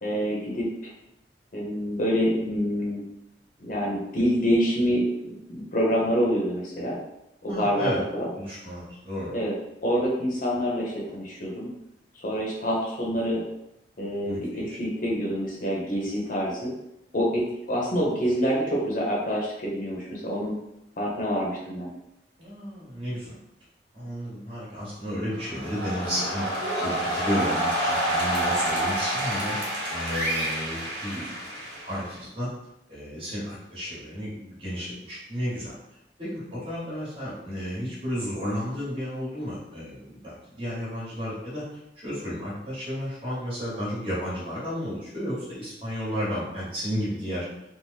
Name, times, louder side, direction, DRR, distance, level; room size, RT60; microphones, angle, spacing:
voice 1, 0.0-0.9 1.5-3.1 3.6-7.0 7.4-8.3 9.3-9.6 9.8-11.7 12.2-13.4 14.0-16.7 17.1-20.5 21.0-21.9, equal, 50° left, -4 dB, 0.7 m, -26 dB
voice 2, 7.5-8.0 8.4-9.3 14.2-14.8 22.4-23.3 23.9-29.6 29.9-31.3 31.9-32.5 32.9-35.8 36.2-41.6 42.0-47.5, equal, 30° right, -7 dB, 1.2 m, -32 dB
sound 1, 25.3-32.2, right 1 dB, 70° right, 0.9 m, -28 dB
2.7 x 2.0 x 3.2 m, 0.84 s
head